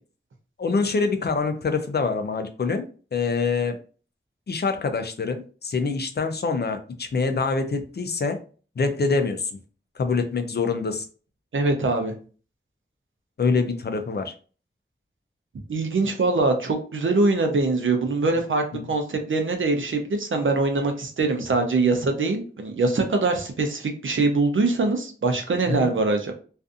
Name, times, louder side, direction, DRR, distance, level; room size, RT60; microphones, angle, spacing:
voice 1, 0.6-2.8 3.1-3.8 4.5-8.4 8.8-9.5 10.0-11.1 13.4-14.3 18.7-18.8 25.7-25.9, left 4 dB, 55° left, 7 dB, 0.4 m, -25 dB
voice 2, 11.5-12.1 15.7-26.3, right 3 dB, 85° right, 5 dB, 0.6 m, -23 dB
2.5 x 2.5 x 2.4 m, 0.39 s
wide cardioid pair, 70°, 20 cm